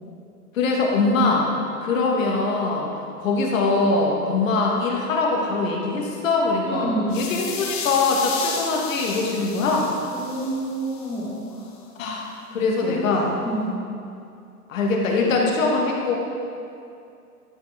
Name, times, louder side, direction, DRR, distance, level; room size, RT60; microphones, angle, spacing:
voice 1, 0.5-1.5 1.8-2.9 3.2-6.9 7.1-9.9 12.0-13.3 14.7-16.2, left 3 dB, 55° left, -1 dB, 1.6 m, -22 dB
voice 2, 6.7-7.2 10.1-11.6 12.8-13.0 13.4-13.8, right 1 dB, ahead, -11 dB, 0.8 m, -28 dB
sound 1, 7.1-11.2, left 6 dB, 30° left, 0.9 m, -33 dB
11.0 x 5.8 x 3.4 m, 2.5 s
figure-of-eight pair, 120°, 47 cm